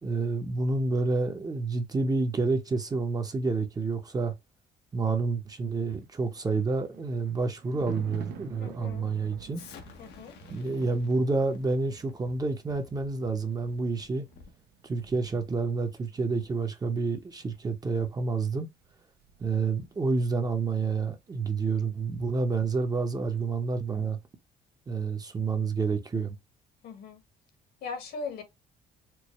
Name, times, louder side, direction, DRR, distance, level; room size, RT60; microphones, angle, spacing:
voice 1, 0.0-4.4 4.9-9.6 10.5-14.3 14.8-18.7 19.4-24.2 24.9-26.4, right 4 dB, 20° right, 0.7 m, -29 dB
Thunder, 5.9-20.5 20.8-21.1, right 6 dB, 75° right, 0.7 m, -50 dB
voice 2, 8.6-9.1 10.0-10.3 26.8-27.2 27.8-28.4, left 4 dB, 65° left, 1.4 m, -39 dB
Explosion, 9.5-14.6, left 6 dB, 85° left, 1.0 m, -53 dB
4.6 x 2.1 x 3.0 m
cardioid pair, 110°, 17 cm